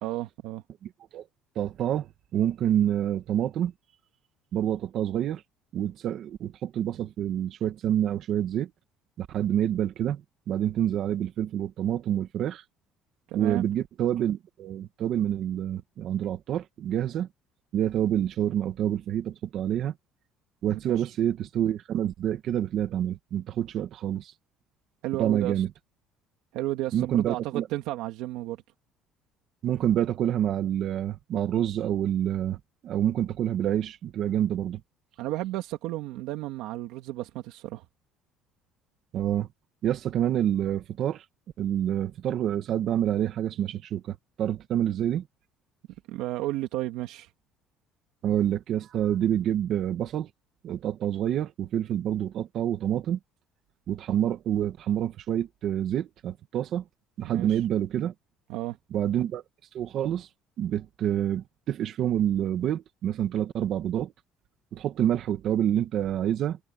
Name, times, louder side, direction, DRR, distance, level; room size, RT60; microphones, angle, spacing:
voice 1, 0.0-0.6 13.3-13.6 20.7-21.1 25.0-25.6 26.5-28.6 35.2-37.8 46.1-47.3 57.3-57.6 58.5-58.8, right 16 dB, 70° right, 2.3 m, -33 dB
voice 2, 0.8-1.2 1.6-3.7 4.5-5.4 5.7-8.7 9.2-10.2 10.5-12.6 13.3-17.3 17.7-19.9 20.6-24.3 25.2-25.7 26.9-27.7 29.6-34.8 39.1-39.5 39.8-41.2 41.6-45.3 48.2-50.3 50.6-53.2 53.9-56.8 57.2-58.1 58.9-59.4 59.7-60.3 60.6-64.1 64.7-66.6, right 10 dB, 45° right, 2.3 m, -27 dB
cardioid pair, 170°, 0 cm